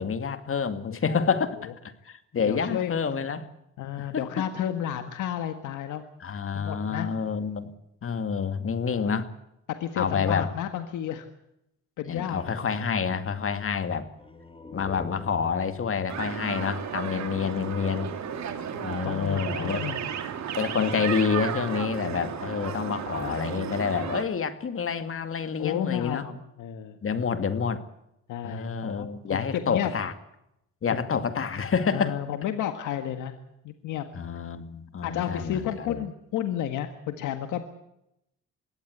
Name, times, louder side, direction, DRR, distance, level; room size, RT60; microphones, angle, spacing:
voice 1, 0.0-1.7 2.0-3.5 4.0-4.2 6.2-7.7 8.0-9.3 10.0-10.5 12.1-14.1 14.7-18.1 18.8-19.8 20.6-26.3 27.0-27.8 28.4-30.1 30.8-32.2 34.1-36.0, left 6 dB, 45° left, 10 dB, 2.3 m, -28 dB
voice 2, 2.4-3.0 3.8-6.0 6.5-7.1 8.8-9.0 9.8-11.3 12.0-12.5 18.7-20.1 22.0-22.2 25.6-27.0 28.3-29.9 30.9-31.2 31.9-33.3 33.6-34.1 35.0-37.6, left 10 dB, 85° left, 8 dB, 1.7 m, -32 dB
sound 1, 14.1-17.7, left 2 dB, 20° left, 2.2 m, -46 dB
sound 2, 16.1-24.2, right 8 dB, 65° right, 2.7 m, -34 dB
22.5 x 17.0 x 8.1 m, 0.83 s
cardioid pair, 90°, 30 cm